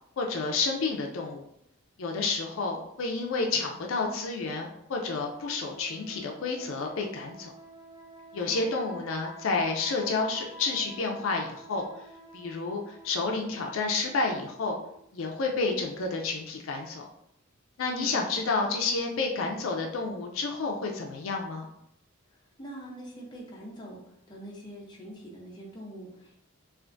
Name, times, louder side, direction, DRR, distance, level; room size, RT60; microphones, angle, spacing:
voice 1, 0.2-1.5 2.0-7.5 8.3-11.9 12.3-14.8 15.1-17.1 17.8-21.7, left 3 dB, 65° left, 1 dB, 0.4 m, -30 dB
sound 1, 5.4-15.1, right 1 dB, 20° right, 0.5 m, -50 dB
voice 2, 8.4-8.7 18.0-18.5 22.6-26.4, right 1 dB, 20° left, -3 dB, 0.6 m, -44 dB
3.3 x 2.5 x 2.5 m, 0.75 s
head